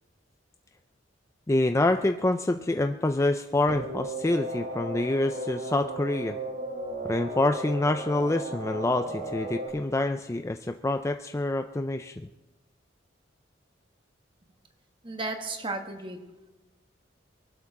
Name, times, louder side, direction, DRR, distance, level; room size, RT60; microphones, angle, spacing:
voice 1, 1.5-6.4 7.0-12.2, left 2 dB, 15° left, 7 dB, 0.4 m, -26 dB
sound 1, 3.7-9.7, right 1 dB, 60° right, 4.7 m, -35 dB
voice 2, 15.0-16.2, right 2 dB, 25° right, 4 dB, 1.5 m, -34 dB
23.0 x 12.0 x 3.7 m, 1.1 s
head